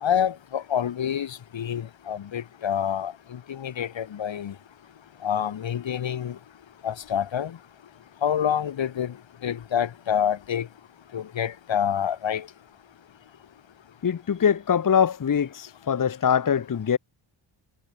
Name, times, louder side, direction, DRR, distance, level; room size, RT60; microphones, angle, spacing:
voice 1, 0.0-4.5 5.2-6.4 6.8-7.6 8.2-9.1 9.4-10.7 11.1-12.5, left 9 dB, 65° left, 1.2 m, -27 dB
voice 2, 14.0-17.0, left 7 dB, 40° left, 0.9 m, -23 dB
wide cardioid pair, 120°, 48 cm